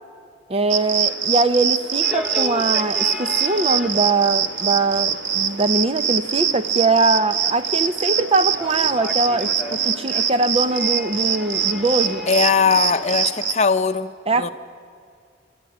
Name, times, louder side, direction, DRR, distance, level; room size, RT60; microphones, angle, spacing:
voice 1, 0.5-12.3 14.3-14.5, right 3 dB, 30° right, 0.7 m, -21 dB
sound 1, 0.7-13.5, right 8 dB, 70° right, 1.1 m, -23 dB
sound 2, 2.0-13.3, left 2 dB, 5° right, 1.7 m, -36 dB
voice 2, 12.3-14.1 14.4-14.5, left 5 dB, 35° left, 0.7 m, -19 dB
26.0 x 13.0 x 10.0 m
head